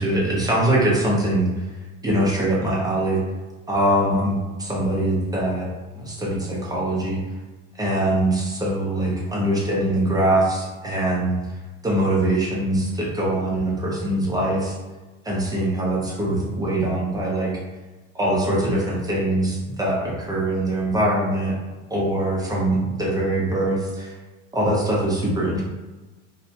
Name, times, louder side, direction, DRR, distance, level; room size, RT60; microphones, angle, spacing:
voice 1, 0.0-1.5 2.0-3.2 3.7-5.7 5.9-7.2 7.8-11.4 11.8-14.7 15.2-17.5 18.1-21.5 21.9-24.1 24.5-25.6, right 1 dB, 10° right, -4 dB, 0.7 m, -22 dB
2.4 x 2.0 x 2.8 m, 1.2 s
supercardioid pair, 100°, 36 cm